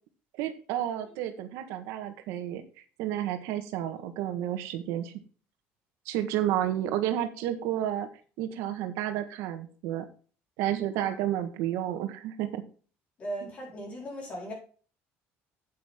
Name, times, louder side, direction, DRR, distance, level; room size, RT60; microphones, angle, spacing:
voice 1, 0.4-2.6 3.0-5.1 6.0-8.1 8.4-10.1 10.6-12.6, right 11 dB, 80° right, 1.6 m, -31 dB
voice 2, 13.2-14.5, right 1 dB, 30° left, 4.4 m, -38 dB
8.9 x 8.5 x 3.7 m
cardioid pair, 175°, 5 cm